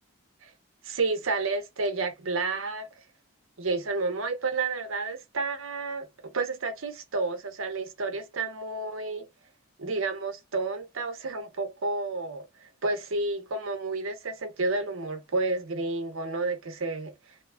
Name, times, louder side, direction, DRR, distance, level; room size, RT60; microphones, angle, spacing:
voice 1, 0.8-2.9 3.6-9.3 9.8-17.1, right 3 dB, 65° right, 0.7 m, -30 dB
2.8 x 2.3 x 3.3 m
head